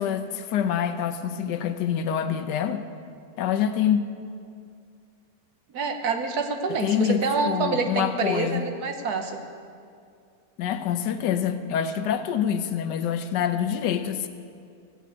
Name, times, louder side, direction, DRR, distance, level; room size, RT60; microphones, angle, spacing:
voice 1, 0.0-2.8 3.4-4.0 6.7-8.6 10.6-14.3, left 9 dB, 75° left, 8 dB, 1.3 m, -26 dB
voice 2, 5.7-9.4, right 4 dB, 65° right, 5 dB, 1.3 m, -27 dB
15.0 x 5.9 x 8.4 m, 2.3 s
omnidirectional pair, 1.9 m